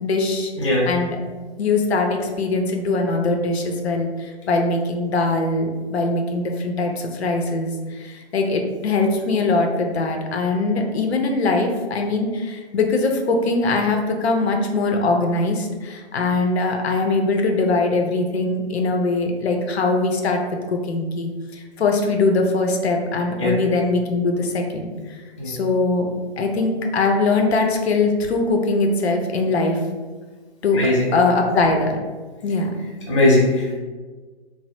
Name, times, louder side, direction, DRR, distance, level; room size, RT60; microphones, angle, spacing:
voice 1, 0.0-0.5 0.9-1.2 1.6-4.1 4.5-20.4 20.7-24.9 25.5-26.1 26.4-29.8 30.6-30.8 31.1-32.0 32.4-32.7, left 3 dB, 70° left, 3 dB, 0.6 m, -21 dB
voice 2, 0.6-0.9 23.4-23.6 25.4-25.5 30.7-31.2 33.1-33.8, left 1 dB, 30° left, -5 dB, 0.4 m, -19 dB
3.1 x 2.0 x 2.8 m, 1.3 s
hypercardioid pair, 165°, 33 cm